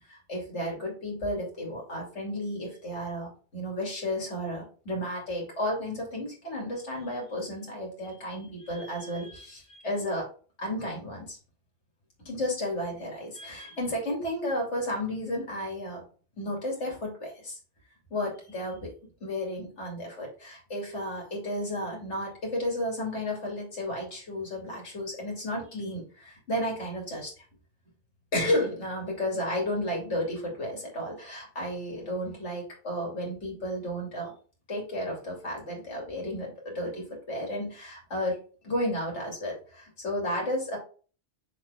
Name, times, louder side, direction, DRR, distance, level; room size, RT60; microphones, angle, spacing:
voice 1, 0.1-10.2 10.6-11.4 12.2-16.0 16.4-17.6 18.1-18.9 19.2-27.3 28.3-34.3 34.7-38.4 38.6-40.8, left 1 dB, 70° left, -1 dB, 2.9 m, -33 dB
6.6 x 4.3 x 3.5 m, 0.38 s
omnidirectional pair, 1.2 m